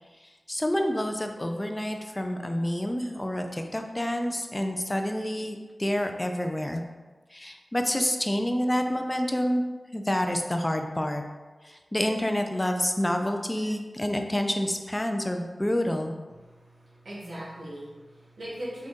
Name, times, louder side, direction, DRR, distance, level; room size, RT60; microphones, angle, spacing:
voice 1, 0.5-6.8 7.3-9.6 9.9-11.2 11.6-16.1, left 1 dB, 20° left, 5 dB, 0.4 m, -28 dB
voice 2, 16.3-18.9, equal, 90° right, -7 dB, 1.1 m, -40 dB
3.8 x 2.6 x 3.6 m, 1.3 s
wide cardioid pair, 55°, 0 cm